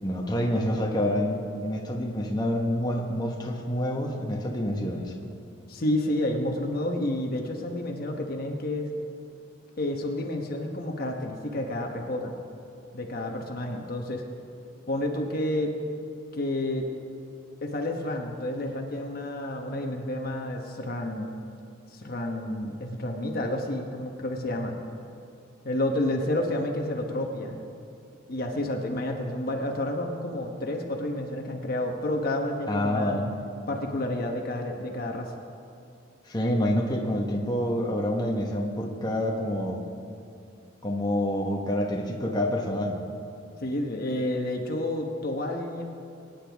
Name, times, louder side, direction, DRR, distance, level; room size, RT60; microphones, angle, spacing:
voice 1, 0.0-5.1 32.7-33.3 36.3-39.8 40.8-43.0, left 1 dB, 20° left, -1 dB, 1.2 m, -27 dB
voice 2, 5.7-8.9 9.8-12.3 12.9-14.2 14.9-15.7 16.3-16.8 17.6-21.3 21.9-24.8 25.6-27.6 28.3-33.2 33.7-35.3 43.6-45.8, left 1 dB, 50° left, 2 dB, 1.1 m, -30 dB
23.5 x 9.9 x 3.5 m, 2.4 s
head